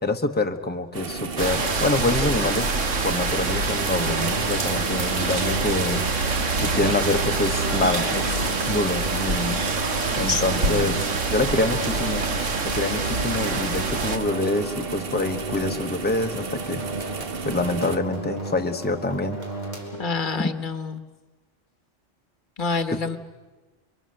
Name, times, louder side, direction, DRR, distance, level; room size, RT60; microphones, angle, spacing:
voice 1, 0.0-2.7 3.0-6.1 6.6-9.6 10.2-12.3 12.6-16.8 17.4-19.4 20.4-20.5, left 2 dB, 10° left, 5 dB, 1.2 m, -26 dB
sound 1, 0.9-18.0, right 5 dB, 50° right, 1.3 m, -34 dB
sound 2, 1.4-14.2, right 3 dB, 80° right, 1.9 m, -26 dB
sound 3, 4.0-20.4, right 2 dB, 35° right, 3.4 m, -35 dB
voice 2, 10.3-11.0 20.0-21.0 22.6-23.2, left 4 dB, 40° left, 10 dB, 1.4 m, -27 dB
29.0 x 23.5 x 7.7 m, 1.2 s
omnidirectional pair, 1.3 m